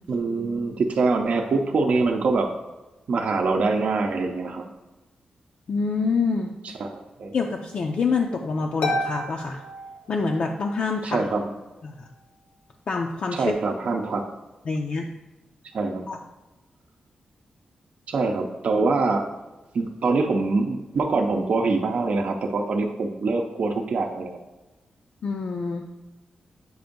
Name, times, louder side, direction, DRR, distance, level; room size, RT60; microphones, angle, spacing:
voice 1, 0.1-2.5 3.1-4.7 6.6-7.3 11.0-11.4 13.3-14.2 15.7-16.1 18.1-19.3 19.7-24.4, right 3 dB, 60° right, 3 dB, 0.6 m, -24 dB
voice 2, 5.7-6.7 7.3-9.6 10.1-11.2 11.8-12.1 12.9-13.5 14.7-15.1 16.1-16.2 25.2-25.9, left 4 dB, 50° left, 1 dB, 0.4 m, -26 dB
Harp, 8.8-10.7, left 1 dB, 70° left, 0.8 m, -30 dB
7.7 x 2.6 x 5.2 m, 1.1 s
wide cardioid pair, 150°, 3 cm